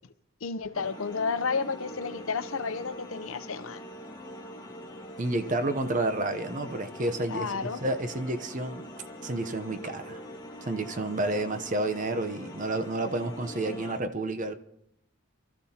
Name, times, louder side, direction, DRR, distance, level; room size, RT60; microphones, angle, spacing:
voice 1, 0.4-3.8 7.3-7.8, left 5 dB, 80° left, 0.7 m, -31 dB
sound 1, 0.7-14.0, equal, 20° left, 1.7 m, -43 dB
voice 2, 5.2-8.8 9.2-10.2 10.6-14.5, right 2 dB, 40° right, 0.8 m, -30 dB
27.5 x 13.0 x 2.9 m
head